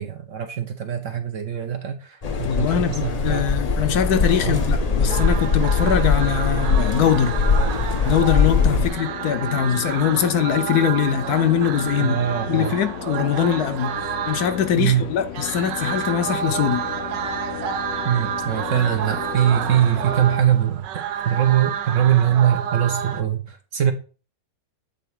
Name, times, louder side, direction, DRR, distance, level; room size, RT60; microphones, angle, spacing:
voice 1, 0.0-3.5 4.4-4.6 8.8-8.9 12.0-12.7 14.8-15.0 18.0-23.9, right 10 dB, 60° right, 0.9 m, -22 dB
sound 1, 2.2-20.4, left 11 dB, 90° left, 1.3 m, -35 dB
sound 2, 2.2-8.9, left 4 dB, 35° left, 0.6 m, -21 dB
voice 2, 2.4-7.3 8.0-12.2 12.5-14.0 14.3-16.8, left 8 dB, 70° left, 1.1 m, -22 dB
sound 3, 5.1-23.2, right 9 dB, 85° right, 1.3 m, -30 dB
8.0 x 4.0 x 4.7 m
omnidirectional pair, 1.9 m